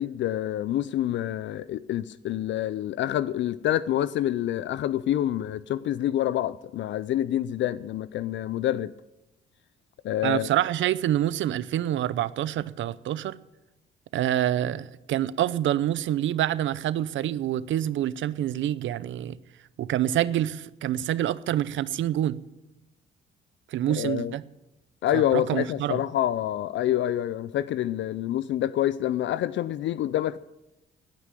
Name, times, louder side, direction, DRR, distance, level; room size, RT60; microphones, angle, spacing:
voice 1, 0.0-8.9 10.0-10.5 23.9-24.3 25.0-30.4, left 12 dB, 70° left, 0.5 m, -27 dB
voice 2, 10.2-13.4 14.1-19.4 19.8-22.4 23.7-24.4 25.1-26.0, right 12 dB, 70° right, 0.7 m, -27 dB
17.0 x 6.0 x 9.9 m
cardioid pair, 90°, 20 cm